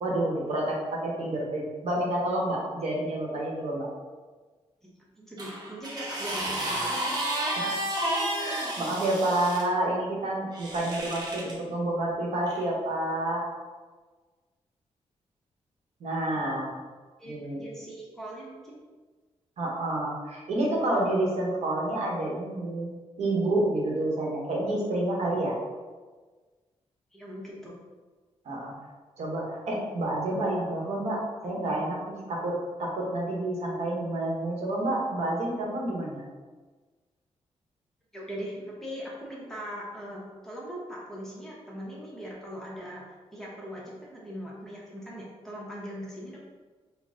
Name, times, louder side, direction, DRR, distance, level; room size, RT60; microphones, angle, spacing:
voice 1, 0.0-3.9 7.5-7.8 8.4-13.4 16.0-16.7 17.2-17.6 19.6-22.9 23.2-25.5 28.4-28.7 29.2-32.5 32.8-36.2, right 1 dB, 70° right, -3 dB, 1.0 m, -29 dB
voice 2, 5.2-6.9 17.2-18.8 27.1-27.8 38.1-43.0 43.3-46.4, equal, 5° left, -5 dB, 0.9 m, -40 dB
sound 1, 5.4-9.7 10.5-11.6 12.5-12.6, right 1 dB, 35° right, 0.7 m, -31 dB
4.1 x 2.1 x 3.6 m, 1.3 s
wide cardioid pair, 120°, 11 cm